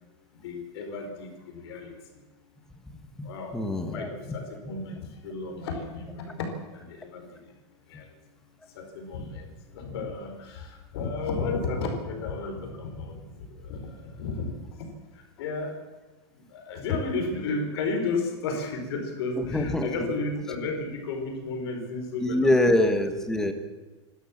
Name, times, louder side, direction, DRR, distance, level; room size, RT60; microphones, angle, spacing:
voice 1, 0.4-1.9 3.2-3.6 3.9-6.5 6.7-7.3 7.9-8.1 8.8-13.2 13.5-14.5 15.4-15.8 16.5-22.9, left 3 dB, 60° left, 4 dB, 4.8 m, -33 dB
voice 2, 2.9-4.4 19.4-19.9 22.2-23.5, left 1 dB, 5° left, 6 dB, 1.6 m, -25 dB
28.0 x 13.0 x 7.4 m, 1.2 s
supercardioid pair, 170°, 15 cm